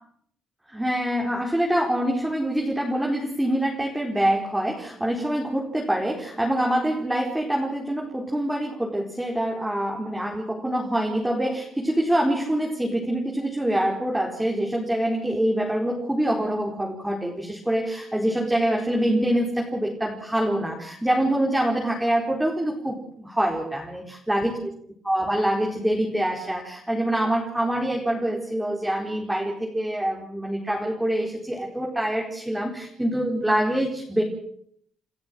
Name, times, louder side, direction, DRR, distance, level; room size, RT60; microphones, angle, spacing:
voice 1, 0.7-24.7 25.0-34.2, right 1 dB, 5° right, -1 dB, 4.6 m, -25 dB
30.0 x 13.5 x 7.8 m, 0.66 s
cardioid pair, 90°, 0 cm